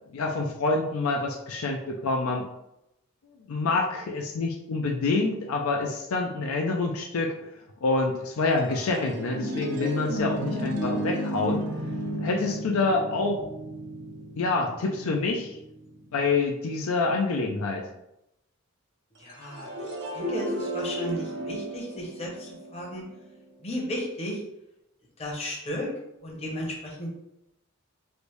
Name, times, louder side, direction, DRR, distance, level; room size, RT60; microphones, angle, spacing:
voice 1, 0.1-2.5 3.5-7.3 7.8-11.6 12.2-13.4 14.4-15.6 16.1-17.9, left 3 dB, 75° left, 2 dB, 0.4 m, -27 dB
sound 1, 8.5-16.1 19.3-23.4, right 1 dB, 55° right, 0.5 m, -33 dB
voice 2, 19.2-23.0 23.6-24.4 25.2-25.9 26.2-27.1, equal, 30° left, -2 dB, 0.7 m, -35 dB
3.2 x 2.6 x 3.0 m, 0.85 s
head